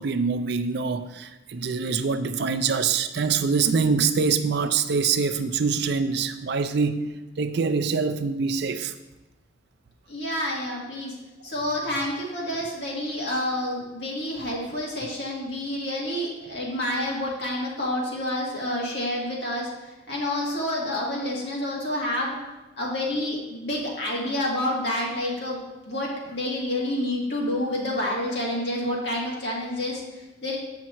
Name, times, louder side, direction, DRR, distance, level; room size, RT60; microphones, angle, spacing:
voice 1, 0.0-7.1 7.4-8.9, right 5 dB, 60° right, 9 dB, 0.4 m, -24 dB
voice 2, 10.1-11.2 11.4-22.4 22.8-25.6 25.9-30.6, left 1 dB, 60° left, -3 dB, 2.0 m, -28 dB
7.4 x 5.8 x 4.4 m, 1.0 s
head